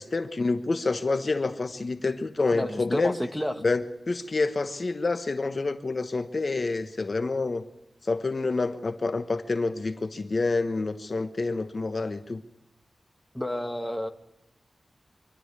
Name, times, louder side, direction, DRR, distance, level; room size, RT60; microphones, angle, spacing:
voice 1, 0.0-3.2 3.6-7.6 8.0-12.4, left 3 dB, 40° left, 9 dB, 1.1 m, -28 dB
voice 2, 2.5-3.6 13.3-14.1, equal, 5° left, 6 dB, 1.6 m, -30 dB
25.0 x 12.5 x 9.7 m, 0.89 s
wide cardioid pair, 115°, 0 cm